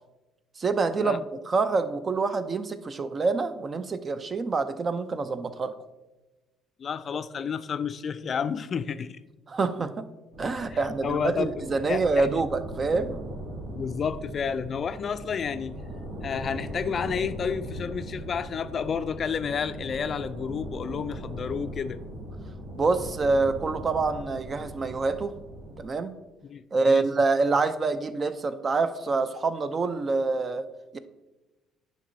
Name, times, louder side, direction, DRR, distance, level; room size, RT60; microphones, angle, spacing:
voice 1, 0.6-5.7 9.5-10.1 10.4-13.2 22.7-25.3 25.8-26.1 26.7-30.7 30.9-31.0, right 3 dB, 35° right, 0.5 m, -26 dB
voice 2, 6.8-9.2 10.7-12.3 13.7-15.8 16.2-22.0 26.4-27.1, left 6 dB, 45° left, 0.3 m, -31 dB
sound 1, 10.3-25.9, right 1 dB, 70° right, 1.5 m, -39 dB
10.0 x 5.2 x 2.7 m
hypercardioid pair, 55°, 0 cm